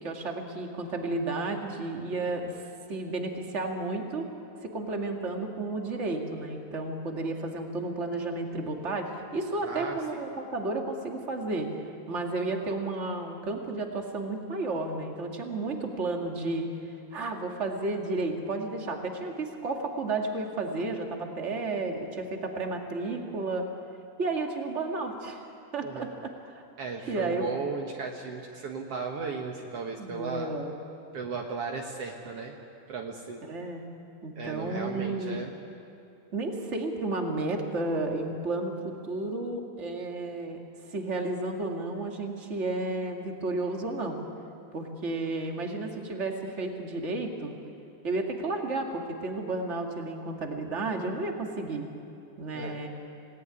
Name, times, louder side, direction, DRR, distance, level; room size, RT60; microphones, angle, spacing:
voice 1, 0.0-2.6 2.9-4.2 4.6-11.7 12.1-23.7 24.2-25.4 25.7-26.6 27.1-27.4 30.0-30.7 33.5-33.8 34.2-35.5 36.3-40.6 40.9-44.2 44.7-47.5 48.0-51.9 52.4-52.9, right 2 dB, 40° right, 2 dB, 0.9 m, -32 dB
voice 2, 9.6-10.0 25.8-26.2 26.8-30.6 31.1-32.5 32.9-33.4 34.3-35.5 45.1-45.2 52.5-52.8, right 4 dB, 65° right, 1 dB, 1.5 m, -36 dB
28.0 x 18.5 x 9.9 m, 2.8 s
omnidirectional pair, 4.9 m